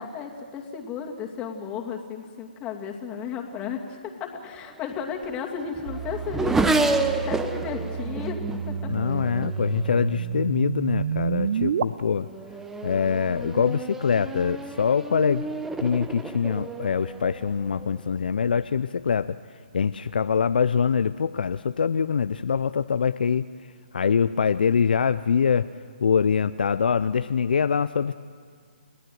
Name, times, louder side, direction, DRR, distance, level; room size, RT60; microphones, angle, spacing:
voice 1, 0.0-8.4 8.7-8.9, left 7 dB, 20° left, 2 dB, 2.5 m, -34 dB
Race car auto racing / Accelerating revving vroom, 4.7-10.5 11.4-11.7 12.2-18.1, right 3 dB, 5° right, 0.9 m, -31 dB
sound 1, 5.9-11.8, right 8 dB, 50° right, 0.8 m, -30 dB
voice 2, 8.9-12.3 12.8-15.5 15.8-19.4 19.7-23.5 23.9-25.7 26.0-28.1, left 6 dB, 65° left, 13 dB, 0.5 m, -24 dB
29.5 x 17.0 x 7.8 m, 2.1 s
figure-of-eight pair, 140°, 5 cm